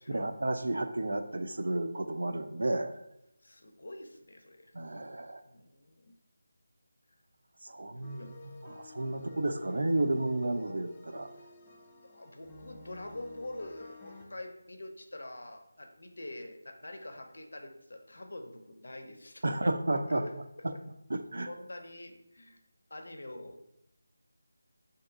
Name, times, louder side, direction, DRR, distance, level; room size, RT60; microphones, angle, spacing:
voice 1, 0.1-3.0 4.7-5.4 7.6-11.3 19.4-20.2 21.1-21.5, right 2 dB, 70° right, 9 dB, 0.3 m, -32 dB
voice 2, 3.4-5.0 5.4-6.1 8.2-8.3 10.4-10.8 11.3-11.5 12.0-19.7 20.1-20.3 20.7-20.8 21.4-22.6 22.9-23.6, left 1 dB, 70° left, 5 dB, 0.5 m, -45 dB
sound 1, 8.0-14.3, left 2 dB, 15° left, 0.4 m, -52 dB
2.6 x 2.4 x 3.6 m, 0.83 s
figure-of-eight pair, 165°, 0 cm